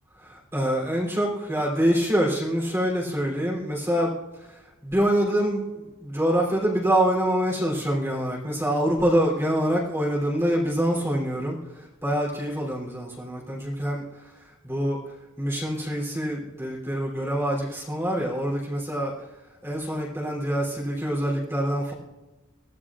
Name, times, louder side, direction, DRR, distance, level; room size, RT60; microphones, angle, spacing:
voice 1, 0.2-15.0 15.4-19.1 19.6-21.9, equal, 15° right, -4 dB, 3.3 m, -25 dB
23.5 x 16.5 x 2.5 m, 1.1 s
head